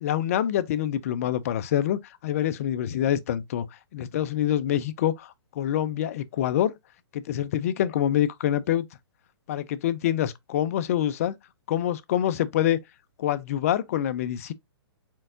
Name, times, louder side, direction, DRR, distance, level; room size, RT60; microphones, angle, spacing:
voice 1, 0.0-3.7 3.9-6.8 7.1-8.8 9.5-11.3 11.7-12.8 13.2-14.5, left 11 dB, 35° left, 0.4 m, -26 dB
4.5 x 4.4 x 2.4 m
hypercardioid pair, 165°, 14 cm